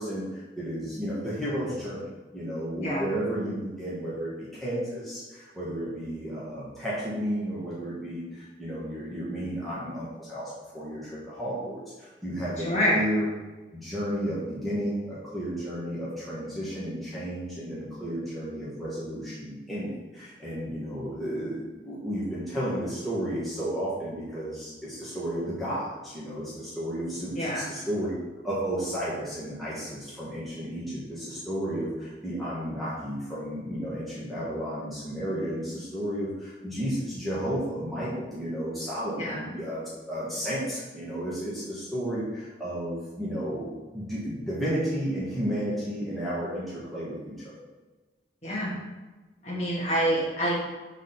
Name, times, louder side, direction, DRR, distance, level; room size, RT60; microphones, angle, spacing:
voice 1, 0.0-2.0 2.3-13.3 13.7-28.1 28.4-47.5, equal, ahead, -10 dB, 1.4 m, -32 dB
voice 2, 12.6-13.0 27.4-27.6 39.2-39.4 48.4-48.7 49.4-50.5, equal, 35° left, -6 dB, 1.9 m, -26 dB
4.9 x 4.0 x 5.8 m, 1.2 s
head